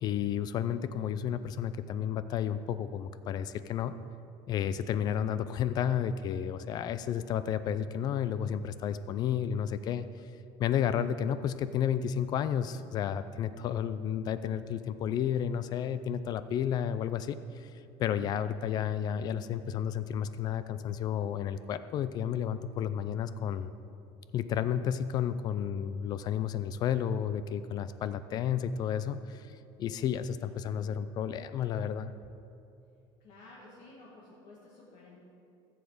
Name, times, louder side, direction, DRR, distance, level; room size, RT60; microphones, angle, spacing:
voice 1, 0.0-3.9 4.5-10.1 10.6-23.7 24.3-32.1, left 9 dB, 35° left, 13 dB, 0.3 m, -32 dB
voice 2, 33.2-35.2, left 2 dB, 50° left, -6 dB, 2.1 m, -53 dB
14.5 x 7.1 x 4.9 m, 2.7 s
cardioid pair, 165°, 12 cm